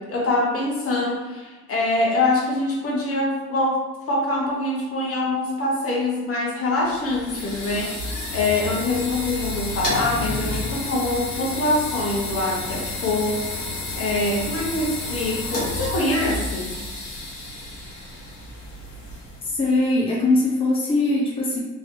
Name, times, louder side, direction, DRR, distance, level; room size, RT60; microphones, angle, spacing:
voice 1, 0.0-13.6 14.0-16.7, left 2 dB, 50° left, -2 dB, 0.9 m, -24 dB
sound 1, 6.8-19.6, left 2 dB, 85° left, 1.1 m, -31 dB
voice 2, 19.4-21.6, left 2 dB, 20° left, -4 dB, 0.7 m, -21 dB
3.1 x 2.8 x 2.6 m, 1.3 s
cardioid pair, 90°, 30 cm